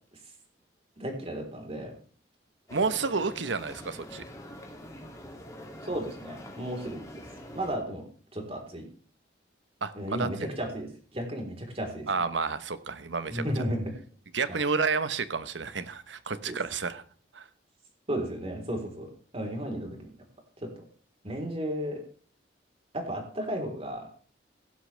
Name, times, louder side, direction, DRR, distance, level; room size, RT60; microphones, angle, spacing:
voice 1, 1.0-1.9 5.8-7.2 7.5-8.0 8.3-8.8 9.9-12.1 13.3-13.9 14.5-14.6 16.5-16.6 18.1-20.1 20.6-20.7 21.2-22.0 22.9-24.1, equal, 35° right, 2 dB, 3.9 m, -34 dB
sound 1, 2.7-7.8, equal, 20° left, 2.6 m, -44 dB
voice 2, 2.7-4.2 9.8-10.5 12.1-13.4 14.3-17.0 17.3-17.5, right 4 dB, 80° right, 13 dB, 1.1 m, -30 dB
16.5 x 11.5 x 3.4 m, 0.43 s
head